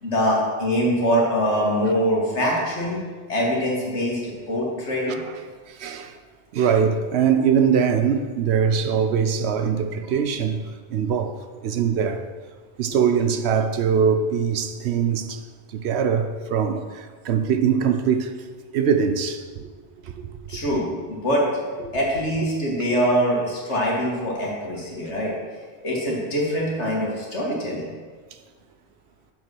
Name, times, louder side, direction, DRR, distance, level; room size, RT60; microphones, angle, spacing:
voice 1, 0.0-3.0 3.3-5.2 20.5-25.3 25.8-27.9, equal, 70° left, 2.3 m, -23 dB
voice 2, 5.7-6.2 6.5-10.6 10.9-12.2 12.8-15.4 15.7-18.3 18.7-19.7 20.0-20.3, right 7 dB, 70° right, 0.8 m, -22 dB
7.2 x 5.2 x 6.1 m
omnidirectional pair, 1.2 m